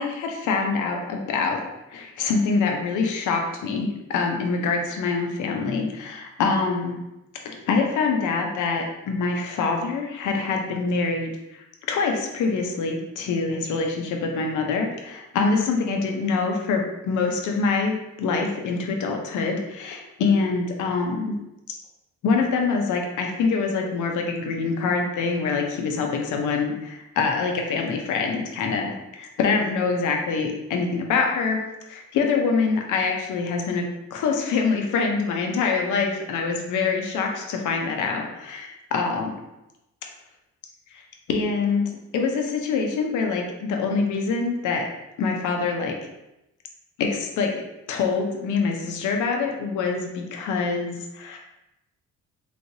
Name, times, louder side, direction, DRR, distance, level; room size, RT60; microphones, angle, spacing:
voice 1, 0.0-1.6 1.9-7.0 7.4-21.4 22.2-33.9 34.1-39.3 40.9-44.9 45.2-46.0 47.0-47.6 47.9-51.4, left 4 dB, 80° left, 2 dB, 0.7 m, -25 dB
3.3 x 3.2 x 2.7 m, 0.93 s
cardioid pair, 90°, 30 cm